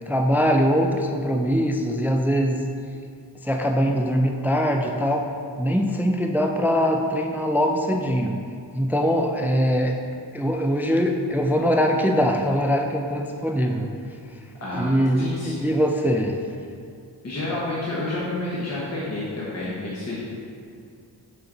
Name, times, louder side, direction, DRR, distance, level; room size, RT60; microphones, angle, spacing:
voice 1, 0.1-2.6 3.4-5.3 5.6-8.4 8.7-10.0 10.3-13.9 14.7-16.4, equal, 5° right, 3 dB, 0.3 m, -22 dB
voice 2, 14.6-15.7 17.2-20.2, left 2 dB, 40° left, -7 dB, 1.2 m, -29 dB
6.8 x 4.3 x 3.9 m, 2.3 s
wide cardioid pair, 110°, 42 cm